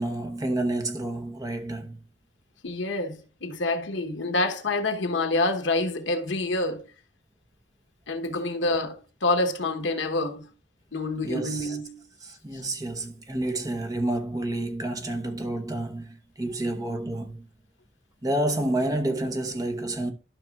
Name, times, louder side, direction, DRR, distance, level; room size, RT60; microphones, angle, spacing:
voice 1, 0.0-2.0 11.2-11.8 12.2-17.5 18.2-20.1, right 1 dB, 20° right, 0.9 m, -29 dB
voice 2, 2.6-6.9 8.1-10.5 10.9-12.0 12.5-12.6, left 2 dB, 80° left, 1.0 m, -27 dB
12.0 x 5.9 x 2.3 m
head